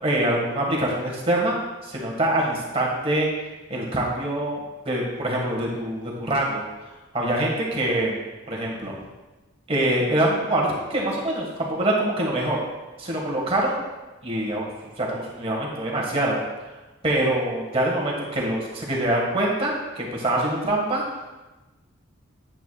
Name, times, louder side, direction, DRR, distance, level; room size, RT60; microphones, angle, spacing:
voice 1, 0.0-1.6 1.8-3.3 3.7-6.6 7.1-8.2 8.5-8.9 9.7-12.6 13.0-13.7 14.2-14.6 15.0-16.4 17.0-21.0, right 1 dB, 25° right, -2 dB, 1.6 m, -24 dB
9.5 x 9.1 x 2.3 m, 1.1 s
head